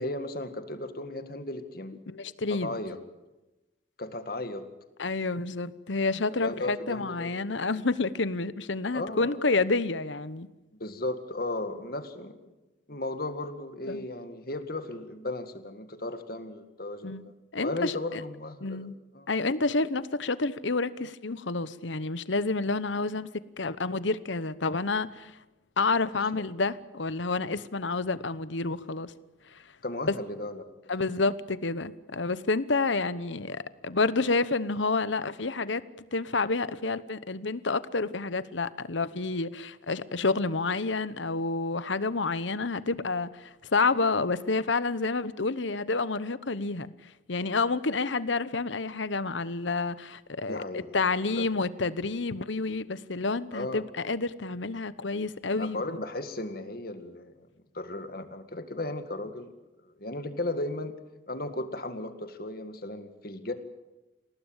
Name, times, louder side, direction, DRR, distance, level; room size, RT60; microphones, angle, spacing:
voice 1, 0.0-2.0 2.5-3.0 4.0-4.7 6.3-7.3 8.9-9.4 10.8-12.5 12.9-17.3 17.6-18.9 19.1-19.3 26.1-26.2 29.8-30.6 50.5-51.5 53.5-53.9 55.6-57.5 57.7-59.5 59.8-61.0 61.3-63.5, left 2 dB, 50° left, 8 dB, 2.0 m, -35 dB
voice 2, 2.1-2.8 5.0-10.5 13.9-14.0 17.0-18.2 18.6-18.9 19.3-23.3 23.6-25.4 25.8-29.1 29.5-29.6 30.9-35.8 36.1-46.9 47.3-50.6 50.9-56.0, left 3 dB, 75° left, 15 dB, 1.0 m, -29 dB
28.0 x 18.0 x 9.0 m, 1.1 s
head